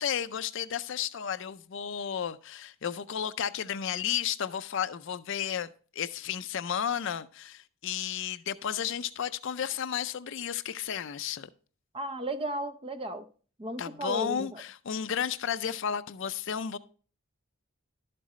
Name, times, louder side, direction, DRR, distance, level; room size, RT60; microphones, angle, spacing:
voice 1, 0.0-11.5 13.8-16.8, left 8 dB, 60° left, 0.4 m, -33 dB
voice 2, 11.9-13.3 13.6-14.6, right 1 dB, 25° right, 0.6 m, -34 dB
11.5 x 7.5 x 3.1 m
head